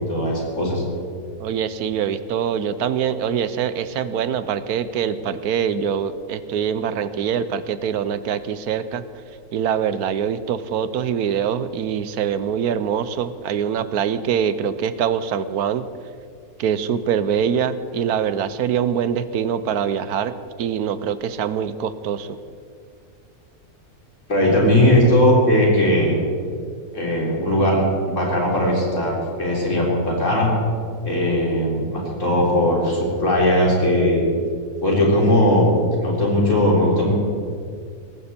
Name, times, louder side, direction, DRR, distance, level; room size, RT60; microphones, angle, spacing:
voice 1, 0.1-0.8 24.3-26.2 26.9-30.5 31.0-34.2 34.8-35.7 36.0-37.1, left 1 dB, 50° left, -3 dB, 4.3 m, -18 dB
voice 2, 1.4-9.0 9.5-15.9 16.6-22.4, right 8 dB, 80° right, 13 dB, 1.3 m, -24 dB
18.5 x 15.5 x 4.4 m, 2.2 s
omnidirectional pair, 1.6 m